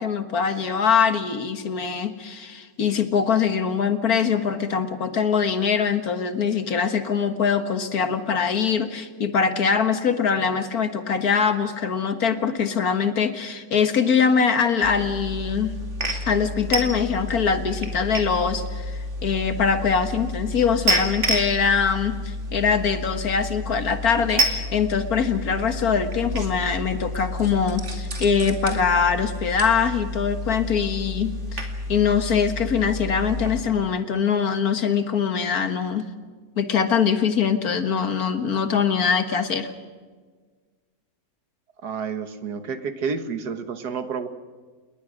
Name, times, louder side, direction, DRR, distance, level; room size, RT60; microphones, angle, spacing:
voice 1, 0.0-15.7 16.3-36.1 36.6-39.7, left 6 dB, 60° left, 9 dB, 1.9 m, -23 dB
sound 1, 14.8-33.6, equal, 40° right, 2.7 m, -30 dB
voice 2, 41.8-44.3, right 5 dB, 70° right, 10 dB, 1.8 m, -30 dB
28.5 x 21.0 x 6.4 m, 1.5 s
omnidirectional pair, 1.8 m